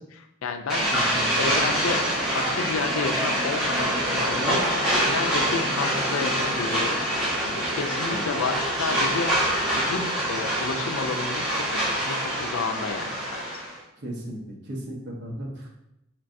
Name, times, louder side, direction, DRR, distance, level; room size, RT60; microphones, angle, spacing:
voice 1, 0.0-0.9 1.4-2.0 2.3-4.6 5.1-7.0 7.4-9.3 9.9-13.5, left 4 dB, 75° left, 5 dB, 0.4 m, -31 dB
sound 1, 0.7-13.7, equal, 5° right, 1.0 m, -25 dB
voice 2, 0.9-1.3 8.1-8.3 14.0-14.4 14.7-15.7, right 1 dB, 50° right, -2 dB, 0.9 m, -35 dB
4.4 x 3.2 x 2.6 m, 0.86 s
head